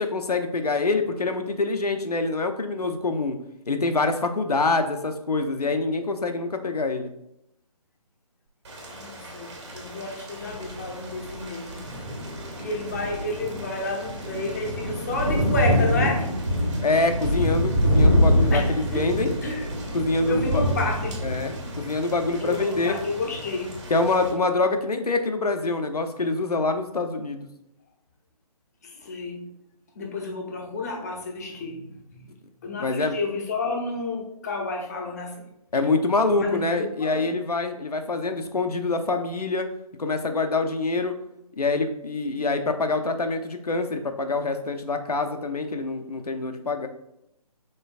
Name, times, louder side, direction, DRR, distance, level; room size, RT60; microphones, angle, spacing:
voice 1, 0.0-3.4 3.7-7.1 16.8-19.3 19.9-20.6 21.2-23.0 23.9-27.5 32.8-33.2 35.7-39.7 40.0-41.1 41.6-46.9, left 3 dB, 75° left, 7 dB, 0.7 m, -25 dB
Thunder / Rain, 8.7-24.3, equal, 45° right, 1.5 m, -26 dB
voice 2, 8.9-12.0 12.6-16.3 18.5-19.1 19.4-19.7 20.2-21.2 22.4-23.8 28.8-29.5 30.0-32.3 32.6-35.4 36.3-37.3, left 3 dB, 25° left, 0 dB, 0.7 m, -31 dB
5.4 x 3.8 x 2.5 m, 0.83 s
figure-of-eight pair, 145°, 20 cm